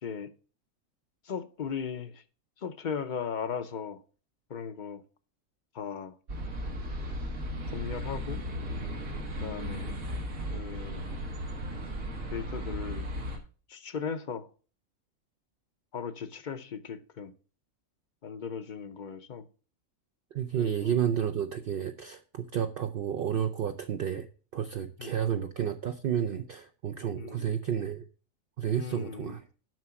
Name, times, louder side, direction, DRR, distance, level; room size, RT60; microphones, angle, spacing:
voice 1, 0.0-0.3 1.2-2.2 2.6-4.0 4.5-5.0 5.7-6.2 7.7-8.4 9.4-9.9 10.5-11.0 12.3-13.0 13.7-14.5 15.9-17.3 18.2-19.5 20.6-20.9 25.0-25.1 27.2-27.5 28.8-29.4, left 6 dB, 45° left, 0.7 m, -37 dB
sound 1, 6.3-13.4, equal, 85° right, 2.0 m, -36 dB
voice 2, 20.3-24.3 24.5-28.1 28.6-29.5, right 9 dB, 60° right, 0.6 m, -31 dB
7.7 x 5.9 x 5.8 m
omnidirectional pair, 1.4 m